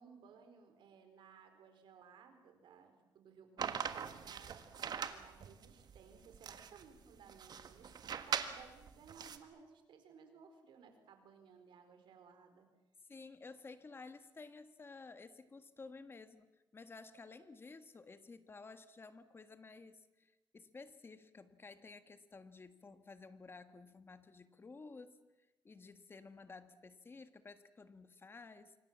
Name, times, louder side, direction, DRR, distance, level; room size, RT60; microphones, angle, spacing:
voice 1, 0.0-12.7, right 6 dB, 90° right, 7 dB, 4.4 m, -60 dB
sound 1, 3.6-9.4, right 7 dB, 60° right, 1.6 m, -42 dB
voice 2, 13.1-16.5 16.7-25.2 25.6-28.8, left 4 dB, 30° left, 11 dB, 1.5 m, -54 dB
26.5 x 24.5 x 7.4 m, 1.1 s
cardioid pair, 125°, 8 cm